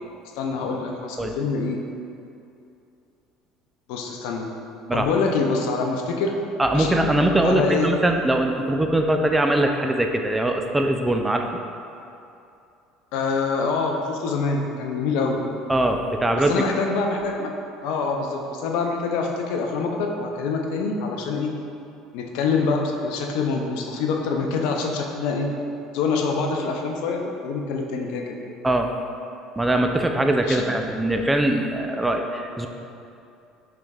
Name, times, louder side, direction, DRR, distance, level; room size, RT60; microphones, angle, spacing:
voice 1, 0.4-1.8 3.9-4.5 4.9-6.3 6.7-7.0 7.4-7.9 13.1-15.4 16.5-17.5 17.8-21.5 22.1-25.5 25.9-28.4 30.5-30.6, left 4 dB, 70° left, 2 dB, 0.4 m, -25 dB
voice 2, 6.6-11.5 15.7-16.6 28.6-28.9 29.6-32.7, right 1 dB, 15° right, 4 dB, 0.3 m, -22 dB
5.0 x 3.2 x 2.3 m, 2.6 s
hypercardioid pair, 75°, 0 cm